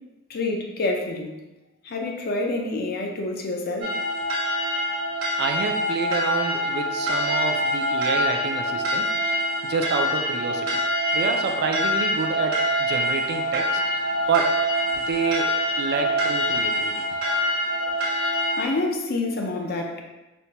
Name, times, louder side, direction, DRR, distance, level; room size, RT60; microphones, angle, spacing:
voice 1, 0.3-1.3 1.8-3.9 18.6-20.0, left 2 dB, 45° left, 2 dB, 0.5 m, -27 dB
sound 1, 3.8-18.7, equal, 70° right, 1.0 m, -25 dB
voice 2, 5.4-9.1 9.6-10.8 11.1-13.8 14.3-14.6 15.0-17.1, right 4 dB, 50° right, 4 dB, 0.3 m, -28 dB
4.3 x 2.2 x 2.8 m, 1.1 s
head